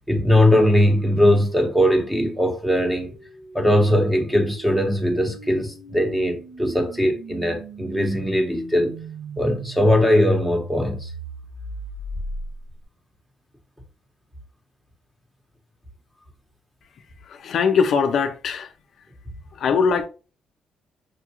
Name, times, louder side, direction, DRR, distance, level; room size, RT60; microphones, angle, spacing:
voice 1, 0.1-3.1 3.5-9.0 9.4-11.1, equal, 5° right, 1.0 m, -20 dB
sound 1, 2.8-12.8, right 1 dB, 80° right, 0.9 m, -37 dB
voice 2, 17.2-18.7 19.5-20.1, left 6 dB, 55° left, 0.5 m, -21 dB
6.2 x 2.4 x 2.9 m
cardioid pair, 145°, 0 cm